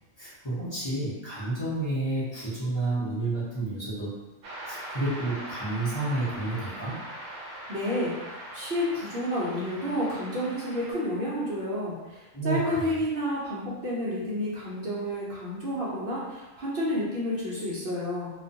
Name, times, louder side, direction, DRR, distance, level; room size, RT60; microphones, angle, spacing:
voice 1, 0.2-4.1 4.6-7.0 12.3-12.9, right 2 dB, 25° left, -10 dB, 0.7 m, -30 dB
sound 1, 4.4-10.9, right 1 dB, 75° right, 0.9 m, -41 dB
voice 2, 7.7-18.3, equal, 55° right, -6 dB, 0.6 m, -30 dB
2.4 x 2.2 x 2.6 m, 1.1 s
omnidirectional pair, 1.4 m